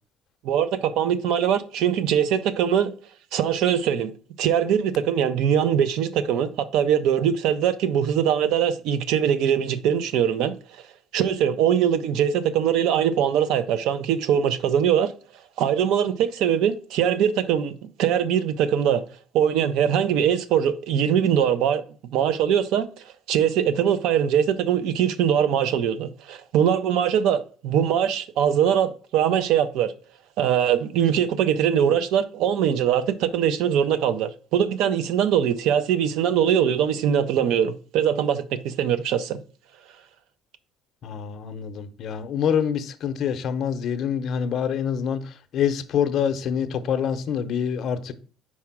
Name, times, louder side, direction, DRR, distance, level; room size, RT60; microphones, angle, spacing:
voice 1, 0.4-2.9 3.3-4.1 4.4-10.5 11.1-15.1 15.6-17.7 18.0-19.0 19.3-21.8 22.1-29.9 30.4-39.4, right 9 dB, 75° right, 0.6 m, -22 dB
voice 2, 41.0-45.2 45.5-48.1, left 8 dB, 50° left, 0.7 m, -26 dB
4.8 x 4.2 x 5.9 m
cardioid pair, 150°, 0 cm